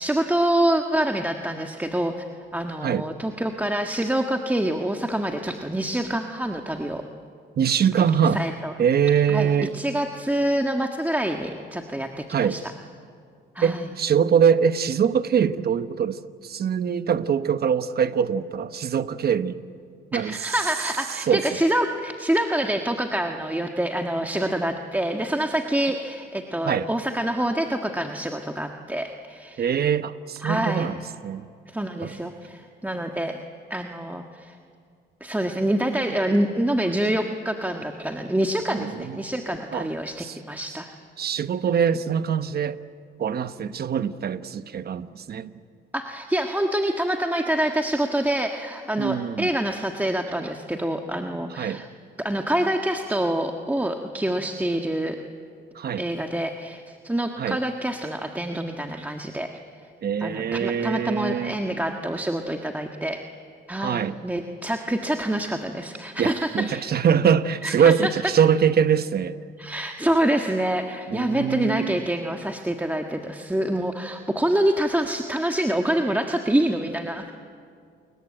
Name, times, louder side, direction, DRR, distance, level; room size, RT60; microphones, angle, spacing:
voice 1, 0.0-2.2 2.5-7.0 8.2-8.7 9.3-12.7 13.5-13.9 20.1-29.7 30.4-30.9 31.7-33.4 33.7-34.6 35.2-40.9 41.7-41.8 45.9-51.9 52.2-55.2 56.0-59.5 60.2-63.2 63.7-66.9 67.6-68.1 69.6-77.3, right 1 dB, 10° right, 3 dB, 1.6 m, -26 dB
voice 2, 7.6-8.4 8.8-9.7 12.3-12.6 13.6-19.6 20.1-20.3 21.3-21.4 26.7-26.9 29.6-30.9 31.2-31.5 32.0-32.1 38.8-39.2 39.7-39.9 40.2-40.3 41.2-42.8 43.2-45.5 49.0-49.5 51.6-51.8 55.8-56.0 57.4-57.6 60.0-61.6 63.8-64.1 66.2-69.3 71.1-72.0, right 7 dB, 50° right, 12 dB, 1.1 m, -23 dB
28.5 x 22.0 x 9.0 m, 2.3 s
cardioid pair, 90°, 20 cm